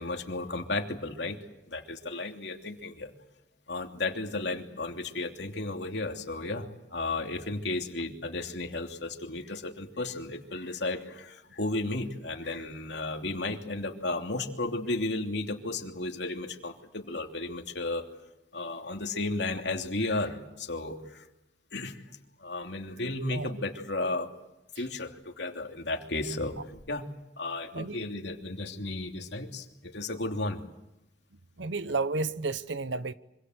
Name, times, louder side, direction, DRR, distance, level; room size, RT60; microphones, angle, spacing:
voice 1, 0.0-1.4 1.7-3.1 3.7-18.0 18.5-21.3 21.7-22.0 22.4-24.3 24.8-27.1 27.4-30.6, left 2 dB, 65° left, 3.0 m, -34 dB
voice 2, 31.6-33.1, right 3 dB, 75° right, 1.0 m, -31 dB
25.5 x 25.5 x 8.0 m
head